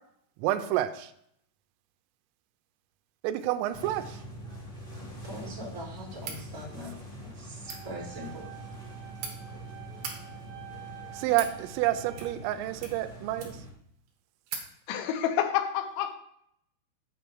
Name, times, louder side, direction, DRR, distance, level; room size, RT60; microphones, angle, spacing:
voice 1, 0.4-1.1 3.2-4.2 11.1-13.6, right 14 dB, 85° right, 3.1 m, -29 dB
sound 1, 3.7-13.7, right 1 dB, 30° left, 0.9 m, -44 dB
voice 2, 5.2-6.9 7.4-8.4, equal, 20° right, 3.2 m, -41 dB
sound 2, 6.2-6.4 7.5-7.8 8.8-9.3 9.9-10.2 10.9-11.5 12.1-12.5 12.8-13.7 14.1-14.2 14.5-14.7, right 6 dB, 65° right, 3.0 m, -40 dB
sound 3, 7.7-12.6, right 11 dB, 50° right, 2.1 m, -48 dB
voice 3, 14.9-16.1, left 10 dB, 80° left, 2.8 m, -28 dB
8.8 x 4.7 x 6.2 m
omnidirectional pair, 5.7 m